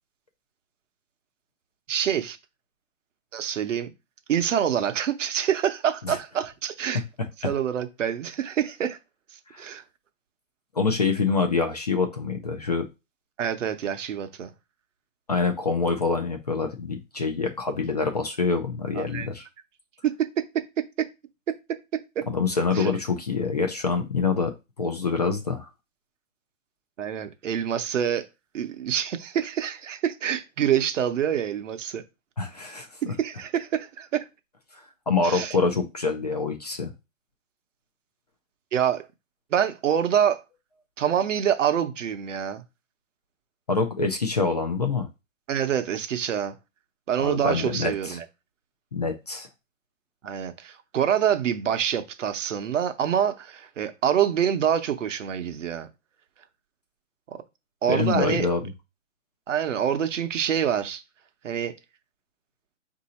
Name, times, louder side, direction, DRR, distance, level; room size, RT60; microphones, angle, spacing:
voice 1, 1.9-2.4 3.3-3.9 4.3-7.0 7.4-9.0 9.6-9.8 13.4-14.5 19.0-19.3 20.0-20.4 20.8-21.1 21.5-21.6 22.2-22.3 22.7-22.9 27.0-28.3 28.5-32.0 33.1-34.3 35.2-35.6 38.7-39.1 39.5-40.4 41.0-42.6 45.5-46.5 47.1-48.2 50.2-55.9 57.3-57.4 57.8-58.5 59.5-61.0 61.4-61.7, right 9 dB, 65° right, 0.8 m, -26 dB
voice 2, 10.8-12.9 15.3-19.5 22.3-24.5 24.8-25.7 32.4-32.9 35.1-36.9 43.7-45.1 47.2-48.2 48.9-49.5 57.9-58.6, left 4 dB, 35° left, 0.4 m, -25 dB
3.7 x 2.7 x 4.2 m
hypercardioid pair, 160°, 40 cm